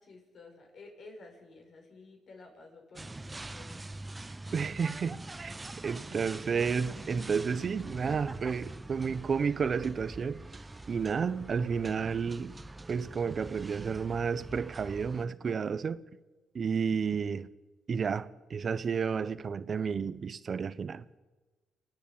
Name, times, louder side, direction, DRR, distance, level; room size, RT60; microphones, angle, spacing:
voice 1, 0.0-3.9, left 3 dB, 55° left, 5.9 m, -52 dB
sound 1, 3.0-15.3, right 2 dB, 20° right, 0.6 m, -44 dB
voice 2, 4.5-5.6 5.8-10.6 10.9-12.5 12.9-16.0 16.5-17.5 17.9-21.0, right 6 dB, 45° right, 0.9 m, -31 dB
29.5 x 10.0 x 8.7 m
cardioid pair, 90°, 0 cm